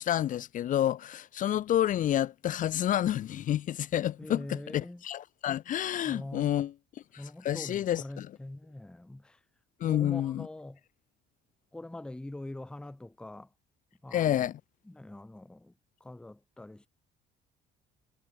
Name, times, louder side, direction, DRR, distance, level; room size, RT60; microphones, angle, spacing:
voice 1, 0.0-6.7 7.1-8.3 9.8-10.5 14.1-14.6, left 11 dB, 50° left, 0.6 m, -29 dB
voice 2, 4.2-5.0 6.0-6.7 7.2-9.4 9.8-10.8 11.7-13.5 14.0-14.5 14.9-15.7 16.0-16.9, left 1 dB, 5° left, 0.6 m, -43 dB
cardioid pair, 110°, 17 cm